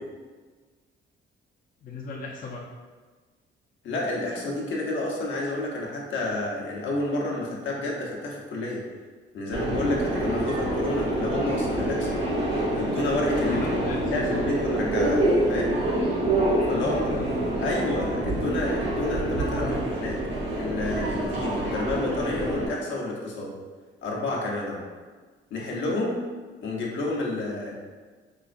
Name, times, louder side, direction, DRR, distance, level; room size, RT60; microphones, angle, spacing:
voice 1, 1.8-2.7 13.5-14.5 16.7-17.3 19.6-19.9, left 3 dB, 45° left, -2 dB, 0.5 m, -35 dB
voice 2, 3.8-8.8 9.3-12.2 12.7-13.6 14.0-15.7 16.7-17.0 17.6-19.6 20.0-20.1 20.6-23.5 24.0-24.8 25.5-26.2 26.6-27.7, left 2 dB, 70° left, -2 dB, 0.8 m, -29 dB
Subway metro underground, 9.5-22.7, right 1 dB, 65° right, 1.3 m, -26 dB
4.9 x 2.4 x 2.5 m, 1.4 s
cardioid pair, 90°, 20 cm